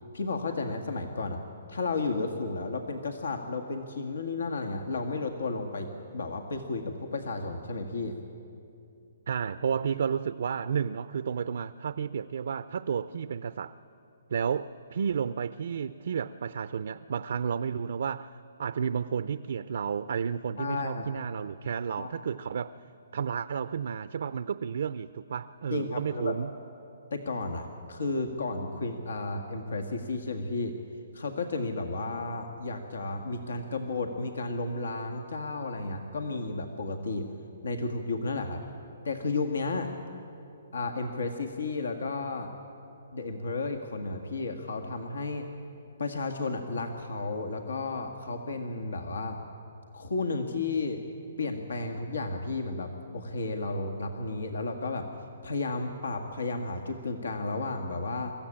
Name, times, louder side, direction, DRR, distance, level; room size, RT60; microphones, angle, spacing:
voice 1, 0.1-1.4 1.7-8.2 20.6-21.1 22.0-22.1 25.7-26.4 27.1-30.7 31.1-37.2 37.6-38.6 39.0-39.9 40.7-42.5 43.1-45.5 46.0-49.4 49.9-51.0 51.4-55.1 55.4-58.3, left 3 dB, 90° left, 5 dB, 1.8 m, -33 dB
voice 2, 9.3-13.7 14.3-22.7 23.1-26.5, right 7 dB, 65° right, 13 dB, 0.5 m, -32 dB
23.5 x 14.5 x 8.7 m, 2.6 s
hypercardioid pair, 160°, 0 cm